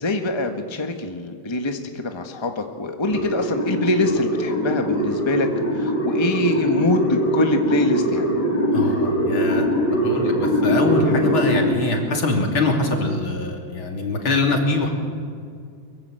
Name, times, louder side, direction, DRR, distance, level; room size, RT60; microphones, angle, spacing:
voice 1, 0.0-5.5 5.8-8.2, left 2 dB, 15° left, 5 dB, 1.4 m, -24 dB
sound 1, 3.0-11.6, equal, 50° left, 6.7 m, -22 dB
voice 2, 8.7-9.7 10.0-14.9, left 2 dB, 70° left, 1 dB, 3.9 m, -23 dB
23.5 x 23.0 x 7.9 m, 2.2 s
omnidirectional pair, 2.3 m